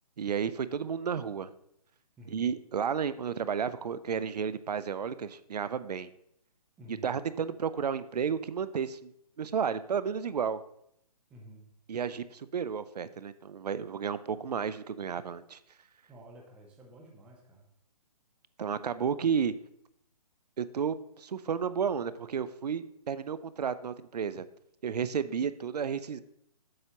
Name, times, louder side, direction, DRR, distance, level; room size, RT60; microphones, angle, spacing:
voice 1, 0.2-1.5 2.3-6.1 6.9-9.1 9.4-10.6 11.9-15.6 18.6-19.5 20.6-24.5 24.8-26.2, right 7 dB, 90° right, 15 dB, 0.5 m, -32 dB
voice 2, 2.2-2.5 6.8-7.1 11.3-11.7 16.1-17.7, right 1 dB, 5° right, 0 dB, 0.5 m, -51 dB
7.8 x 6.8 x 2.9 m, 0.74 s
hypercardioid pair, 160°, 20 cm